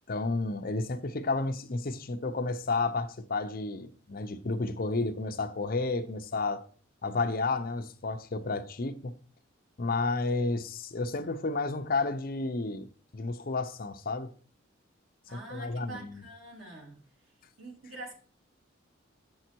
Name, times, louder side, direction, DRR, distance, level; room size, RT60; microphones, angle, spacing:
voice 1, 0.1-6.6 7.0-9.1 9.8-12.9 13.1-14.3 15.3-16.2, left 3 dB, 50° left, 0.7 m, -31 dB
voice 2, 15.3-17.0 17.6-18.1, right 2 dB, 85° right, 3.4 m, -45 dB
8.1 x 5.6 x 4.5 m
head